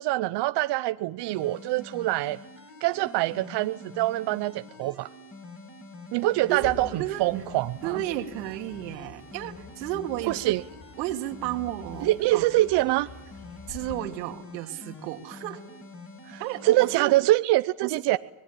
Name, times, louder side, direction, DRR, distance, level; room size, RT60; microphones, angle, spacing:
voice 1, 0.0-2.4 2.8-5.1 6.1-8.0 10.3-10.6 12.0-13.1 16.3-18.2, right 17 dB, 55° right, 11 dB, 0.9 m, -25 dB
sound 1, 1.2-17.2, left 2 dB, 25° left, 6.4 m, -46 dB
Bird, 6.5-13.9, left 5 dB, 60° left, 4.8 m, -47 dB
voice 2, 7.8-10.5 11.0-12.5 13.7-15.6 16.4-17.2 17.8-17.9, right 14 dB, 85° right, 5 dB, 2.6 m, -33 dB
25.5 x 20.5 x 8.8 m, 0.92 s
supercardioid pair, 95°, 49 cm